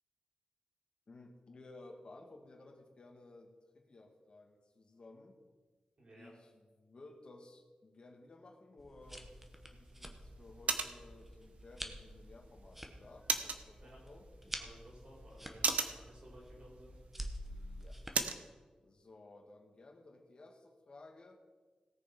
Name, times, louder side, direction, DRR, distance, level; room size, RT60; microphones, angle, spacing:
voice 1, 1.1-5.4 6.1-9.3 9.6-14.3 17.4-18.0 18.8-21.4, left 2 dB, 45° left, 2 dB, 1.9 m, -57 dB
voice 2, 6.0-6.3 13.8-14.0 14.6-17.0 17.5-17.8, right 1 dB, 50° right, -3 dB, 4.6 m, -57 dB
sound 1, 8.8-18.1, equal, 10° right, 1.1 m, -49 dB
sound 2, 9.0-18.5, right 5 dB, 90° right, 0.9 m, -41 dB
17.5 x 6.7 x 5.3 m, 1.3 s
wide cardioid pair, 140°, 2 cm